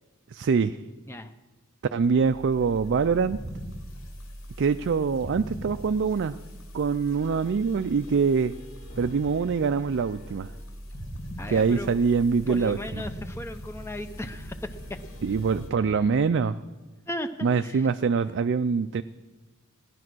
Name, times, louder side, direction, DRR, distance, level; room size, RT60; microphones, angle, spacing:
voice 1, 0.3-0.8 1.9-3.4 4.6-6.4 6.7-8.5 9.0-10.5 11.5-13.0 15.2-16.6 17.4-19.0, right 5 dB, 55° right, 11 dB, 0.4 m, -24 dB
sound 1, 2.0-15.7, equal, 70° left, 3.2 m, -41 dB
Motor vehicle (road) / Engine starting / Accelerating revving vroom, 6.1-6.2 6.4-6.6 7.2-7.3 8.6-16.4, equal, 35° left, 2.1 m, -48 dB
voice 2, 11.4-11.9 12.5-14.7 15.8-16.0 17.1-17.9, left 1 dB, 10° left, 8 dB, 0.5 m, -36 dB
16.5 x 10.5 x 6.2 m, 1.3 s
head